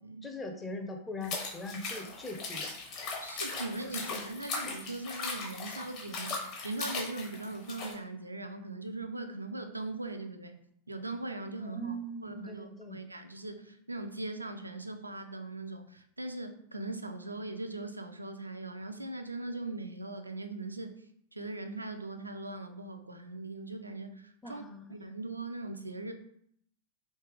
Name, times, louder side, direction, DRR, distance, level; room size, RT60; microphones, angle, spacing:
voice 1, 0.2-2.7 11.6-13.0 24.4-25.1, equal, 15° left, 3 dB, 0.6 m, -41 dB
sound 1, 1.2-7.9, left 4 dB, 40° left, 1.0 m, -38 dB
voice 2, 3.2-10.6 10.9-11.9 12.2-21.0 21.3-24.6 24.9-26.1, right 2 dB, 80° right, 7 dB, 0.3 m, -40 dB
3.2 x 2.9 x 3.3 m, 0.68 s
figure-of-eight pair, 90°, 0 cm